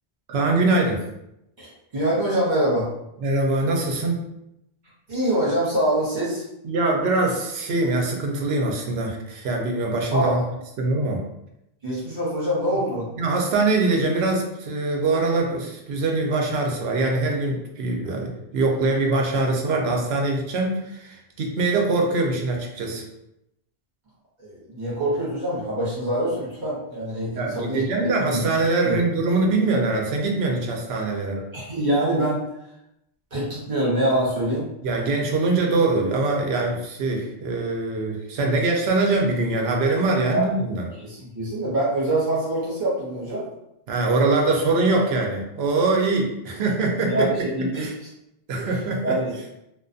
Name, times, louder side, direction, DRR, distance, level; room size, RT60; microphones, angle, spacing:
voice 1, 0.3-1.0 3.2-4.2 6.6-10.4 10.8-11.2 13.2-23.0 27.3-31.4 34.8-40.9 43.9-47.9 48.5-49.2, right 2 dB, 85° right, 1 dB, 0.8 m, -23 dB
voice 2, 1.6-2.9 5.1-6.4 10.1-10.4 11.8-13.1 24.4-27.8 28.3-28.4 28.8-29.0 31.5-32.4 33.3-34.7 40.3-40.4 41.0-43.4 47.0-47.9 48.6-48.7 49.0-49.4, right 1 dB, 50° right, -7 dB, 1.1 m, -24 dB
2.4 x 2.3 x 2.5 m, 0.84 s
omnidirectional pair, 1.0 m